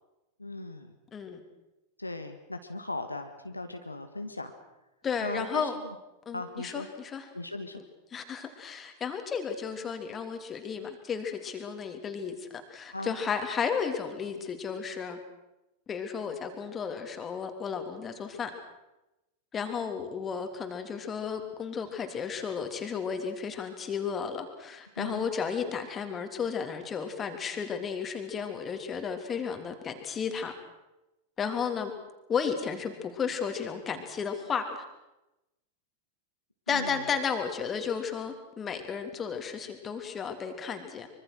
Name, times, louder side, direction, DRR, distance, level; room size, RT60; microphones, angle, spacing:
voice 1, 0.4-0.9 2.0-4.5 5.2-5.7 6.3-6.9 7.3-7.8 12.9-13.2 25.0-25.3 36.7-37.0, left 2 dB, 85° left, 6 dB, 1.7 m, -38 dB
voice 2, 5.0-5.8 6.2-7.3 8.1-15.2 15.9-18.5 19.5-30.5 31.4-31.9 32.3-34.7 36.7-41.1, left 6 dB, 20° left, 6 dB, 3.4 m, -33 dB
24.5 x 24.5 x 6.4 m, 0.97 s
figure-of-eight pair, 90°, 0 cm